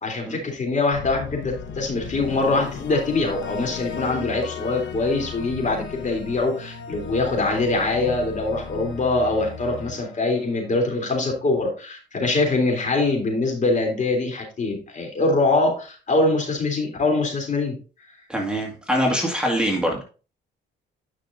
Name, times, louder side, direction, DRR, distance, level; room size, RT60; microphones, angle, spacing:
voice 1, 0.0-17.8, left 2 dB, 40° left, 1 dB, 3.4 m, -23 dB
sound 1, 0.9-11.1, left 6 dB, 70° left, 1.3 m, -36 dB
voice 2, 18.3-20.0, equal, 5° right, -1 dB, 2.0 m, -23 dB
9.9 x 6.0 x 2.7 m, 0.35 s
cardioid pair, 90°, 20 cm